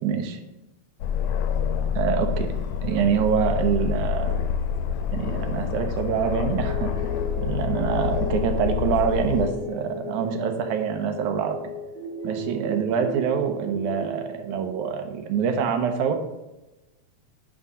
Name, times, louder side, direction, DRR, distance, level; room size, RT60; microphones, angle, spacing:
voice 1, 0.0-0.4 2.0-2.5 2.8-4.4 5.1-11.6 12.2-16.2, right 7 dB, 85° right, 6 dB, 2.3 m, -25 dB
Aircraft, 1.0-9.5, left 8 dB, 80° left, 1.9 m, -27 dB
sound 1, 6.6-14.9, left 2 dB, 45° right, 0.7 m, -36 dB
10.0 x 3.7 x 5.3 m, 1.0 s
omnidirectional pair, 3.3 m